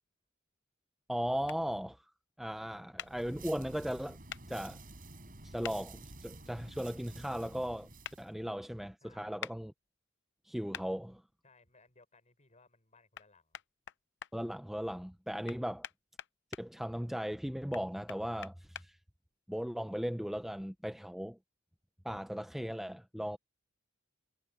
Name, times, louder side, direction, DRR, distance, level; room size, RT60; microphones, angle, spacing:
voice 1, 1.1-2.0 2.4-4.2 4.4-4.8 5.4-7.9 8.2-9.7 10.5-11.2 14.3-15.9 16.6-19.0 19.5-21.4 22.0-23.4, equal, ahead, 0.5 m, -37 dB
sound 1, 1.5-1.6 3.0-3.1 4.3-4.4 5.6-5.8 8.0-8.2 9.4-9.6 10.7-10.9 13.1-13.3 13.5-14.3 15.5-16.6 17.7-18.9, left 10 dB, 60° left, 0.7 m, -44 dB
sound 2, 3.0-8.3, right 2 dB, 45° right, 4.8 m, -51 dB
voice 2, 9.0-9.4 11.4-13.6 15.5-15.6, left 3 dB, 35° left, 6.2 m, -64 dB
head